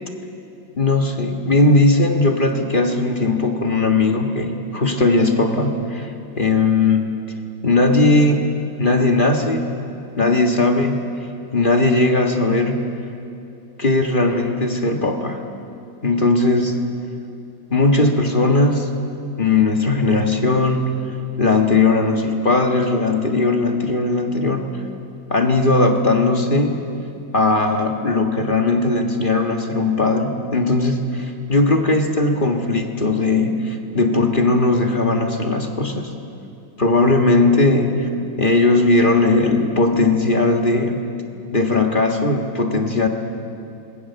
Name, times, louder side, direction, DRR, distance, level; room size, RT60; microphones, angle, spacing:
voice 1, 0.8-7.1 7.6-8.4 8.8-9.7 10.2-11.0 11.5-12.8 13.8-15.4 16.0-16.7 17.7-18.9 19.4-20.9 21.4-24.6 25.3-26.8 27.3-36.1 36.8-38.1 38.4-41.0 41.5-43.1, left 2 dB, 25° left, 3 dB, 1.6 m, -18 dB
26.5 x 21.5 x 7.0 m, 2.6 s
omnidirectional pair, 2.1 m